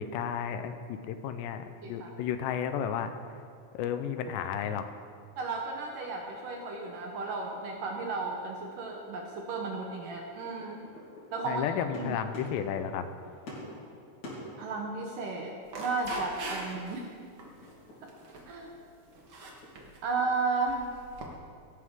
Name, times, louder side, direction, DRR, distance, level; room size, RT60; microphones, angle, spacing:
voice 1, 0.0-3.1 3.7-4.8 11.5-13.1, left 8 dB, 90° left, 9 dB, 3.0 m, -33 dB
voice 2, 1.8-2.1 5.4-10.9 11.3-11.6 12.0-12.2 14.6-17.3 18.5-18.7 20.0-20.9, right 3 dB, 70° right, 1 dB, 2.1 m, -34 dB
sound 1, 4.4-20.6, left 1 dB, 45° left, 4.4 m, -51 dB
sound 2, 15.6-17.0 17.4-17.7 18.1-18.6 19.2-20.0 20.7-21.2, right 2 dB, 90° right, 1.1 m, -41 dB
17.5 x 13.5 x 3.7 m, 2.3 s
omnidirectional pair, 4.9 m